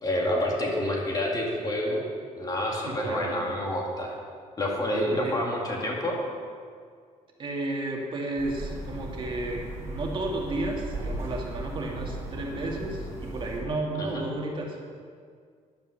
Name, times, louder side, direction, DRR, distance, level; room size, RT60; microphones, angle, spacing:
voice 1, 0.0-2.0 2.4-4.2 4.6-6.2 14.0-14.3, left 1 dB, 30° left, -1 dB, 2.2 m, -28 dB
voice 2, 2.8-3.3 5.1-5.4 7.4-14.8, right 2 dB, 40° right, -1 dB, 2.0 m, -32 dB
sound 1, 8.4-13.6, right 1 dB, 20° right, 3.6 m, -36 dB
10.5 x 9.3 x 6.5 m, 2.1 s
cardioid pair, 130°, 13 cm